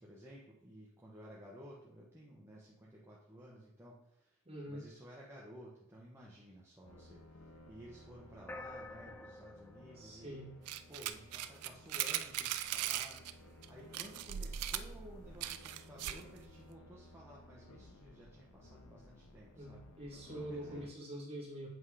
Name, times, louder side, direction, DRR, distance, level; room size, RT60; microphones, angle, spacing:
voice 1, 0.0-4.4 4.7-10.5 10.9-19.8 20.3-20.9, equal, 10° right, -5 dB, 0.9 m, -55 dB
voice 2, 4.5-4.9 10.0-10.5 15.2-15.4 19.5-21.7, right 1 dB, 30° right, -4 dB, 2.2 m, -45 dB
sound 1, 6.8-20.9, left 1 dB, 75° left, 0.8 m, -57 dB
sound 2, 8.5-11.1, left 2 dB, 10° left, 0.4 m, -50 dB
sound 3, 10.7-13.3 13.6-13.7 13.9-16.3, right 11 dB, 85° right, 0.4 m, -39 dB
7.8 x 3.6 x 4.9 m, 0.82 s
head